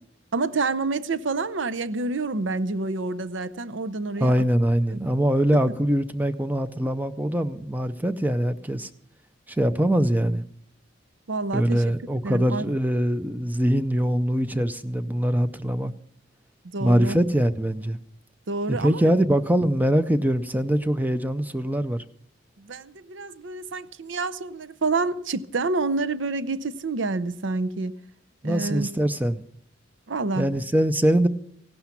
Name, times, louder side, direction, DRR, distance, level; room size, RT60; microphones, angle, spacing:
voice 1, 0.3-4.4 4.9-5.1 11.3-11.9 12.2-12.7 16.7-17.2 18.5-19.1 22.6-28.0 28.4-28.9 30.1-30.5, right 3 dB, 70° right, 0.7 m, -28 dB
voice 2, 4.2-8.9 9.5-10.4 11.5-15.9 16.8-18.0 18.7-22.0 28.4-29.4 30.4-31.3, right 1 dB, 10° right, 0.5 m, -23 dB
16.0 x 12.0 x 5.8 m
head